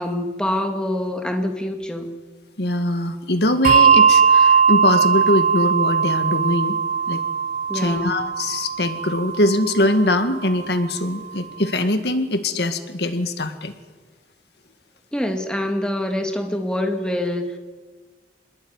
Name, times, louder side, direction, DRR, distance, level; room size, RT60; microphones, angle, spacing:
voice 1, 0.0-2.1 7.7-8.2 15.1-17.6, left 1 dB, 5° left, 4 dB, 2.2 m, -25 dB
voice 2, 2.6-6.8 7.1-7.2 7.7-13.7, left 1 dB, 65° left, 8 dB, 2.0 m, -22 dB
Bell, 3.6-10.5, right 6 dB, 45° right, 0.8 m, -19 dB
26.0 x 21.0 x 9.7 m, 1.4 s
head